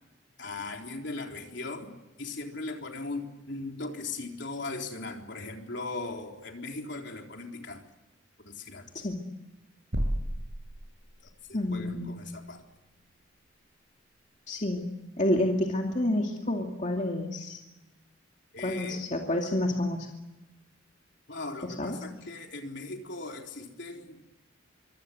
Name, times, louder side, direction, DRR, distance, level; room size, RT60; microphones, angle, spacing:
voice 1, 0.4-1.9 2.2-7.8 8.4-8.9 11.2-12.6 18.5-19.1 21.3-24.2, left 3 dB, 60° left, 2 dB, 3.9 m, -38 dB
voice 2, 8.9-9.3 11.5-12.1 14.5-14.9 15.2-17.6 18.6-20.1 21.6-22.0, left 1 dB, 35° left, 1 dB, 2.6 m, -29 dB
sound 1, 9.9-11.5, equal, 70° right, 6.1 m, -32 dB
25.5 x 25.0 x 7.9 m, 1.0 s
head